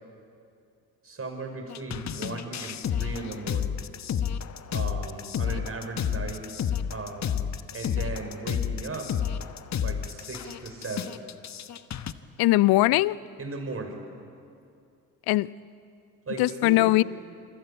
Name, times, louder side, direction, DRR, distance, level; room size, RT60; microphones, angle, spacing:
voice 1, 1.0-3.8 4.7-6.5 6.9-7.4 7.7-9.1 9.8-11.2 12.9-13.0 13.4-14.0 16.3-16.9, right 3 dB, 30° right, 5 dB, 6.0 m, -37 dB
sound 1, 1.7-12.1, left 8 dB, 35° left, 1.2 m, -31 dB
voice 2, 12.4-13.2 15.3-15.5 16.4-17.0, left 18 dB, 50° left, 21 dB, 0.7 m, -20 dB
27.5 x 24.0 x 8.6 m, 2.5 s
hypercardioid pair, 60°, 47 cm